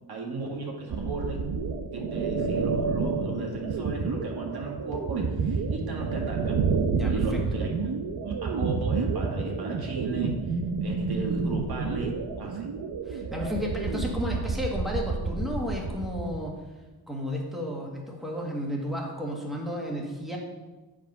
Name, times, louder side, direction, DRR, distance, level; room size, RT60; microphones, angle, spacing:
voice 1, 0.1-1.5 1.9-6.7 7.1-7.9 8.2-12.7, right 3 dB, 70° right, -1 dB, 1.8 m, -35 dB
sound 1, 0.9-16.4, right 4 dB, 90° right, 0.8 m, -29 dB
voice 2, 13.1-16.5 17.1-20.4, equal, ahead, -2 dB, 1.6 m, -32 dB
8.1 x 5.0 x 5.4 m, 1.2 s
wide cardioid pair, 110°, 39 cm